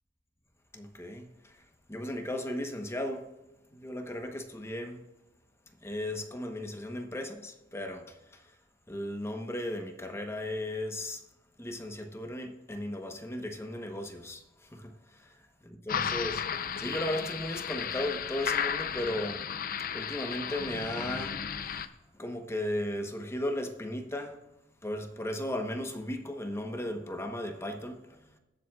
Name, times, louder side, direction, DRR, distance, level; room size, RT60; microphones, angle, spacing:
voice 1, 0.7-3.3 3.7-5.0 5.8-8.6 8.9-11.2 11.6-19.4 19.9-21.9 22.1-24.4 24.8-28.4, left 1 dB, 15° left, 1.0 m, -36 dB
sound 1, 15.9-21.9, left 7 dB, 50° left, 0.6 m, -34 dB
21.0 x 7.6 x 2.4 m
head